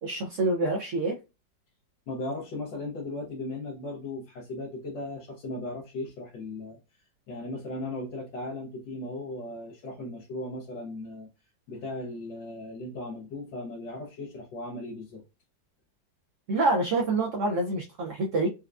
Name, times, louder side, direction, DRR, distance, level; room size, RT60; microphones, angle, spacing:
voice 1, 0.0-1.2 16.5-18.5, right 2 dB, 80° right, 0.6 m, -26 dB
voice 2, 2.1-11.3 11.7-15.2, left 2 dB, 80° left, 1.5 m, -37 dB
4.3 x 2.4 x 2.3 m
omnidirectional pair, 2.0 m